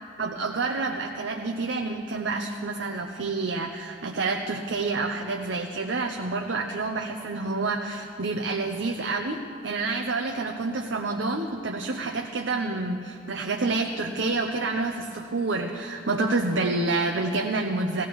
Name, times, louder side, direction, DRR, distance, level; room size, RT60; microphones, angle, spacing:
voice 1, 0.2-18.0, right 3 dB, 80° right, 3 dB, 0.7 m, -28 dB
17.5 x 16.5 x 3.1 m, 2.5 s
head